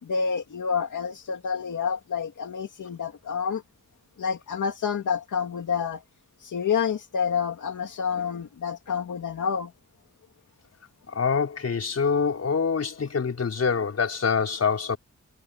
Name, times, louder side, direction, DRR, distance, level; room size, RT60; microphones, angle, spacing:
voice 1, 0.0-3.6 4.2-6.0 6.4-9.7, left 6 dB, 80° left, 2.6 m, -28 dB
voice 2, 11.1-15.0, left 5 dB, 55° left, 5.1 m, -25 dB
wide cardioid pair, 175°, 30 cm